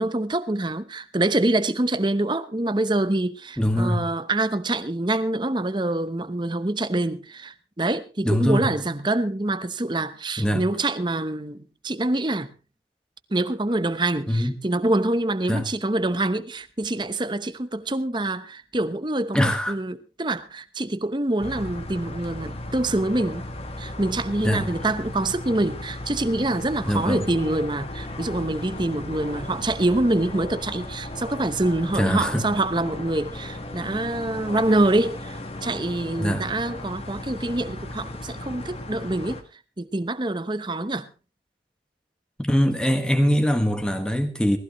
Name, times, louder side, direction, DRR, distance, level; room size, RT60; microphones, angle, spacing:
voice 1, 0.0-12.5 13.3-23.5 23.8-39.4 39.8-41.1, right 2 dB, 25° right, 0.9 m, -25 dB
voice 2, 3.6-4.1 8.2-8.7 10.4-10.6 14.3-14.5 15.5-15.7 19.3-19.8 24.4-24.7 26.9-27.3 32.0-32.5 36.2-36.4 42.4-44.6, equal, 5° left, 1.6 m, -22 dB
sound 1, 21.4-39.4, left 1 dB, 35° left, 1.6 m, -36 dB
19.5 x 15.0 x 3.1 m
head